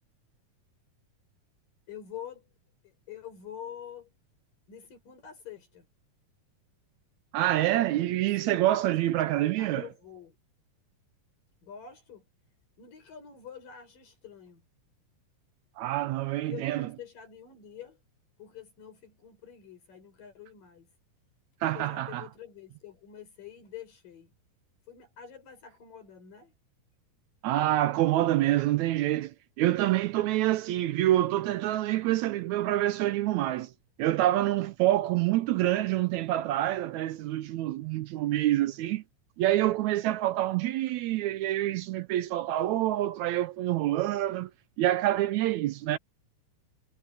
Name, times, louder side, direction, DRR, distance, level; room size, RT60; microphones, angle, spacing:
voice 1, 1.9-2.5 2.8-4.1 4.7-5.9 8.4-8.8 9.4-10.4 11.6-12.2 12.8-14.6 16.4-18.0 18.4-20.9 21.6-24.3 24.9-26.5, left 9 dB, 85° left, 7.8 m, -46 dB
voice 2, 7.3-9.8 15.8-16.9 21.6-22.3 27.4-33.7 34.0-39.0 39.4-44.5 44.8-46.0, right 14 dB, 80° right, 1.7 m, -27 dB
omnidirectional pair, 3.8 m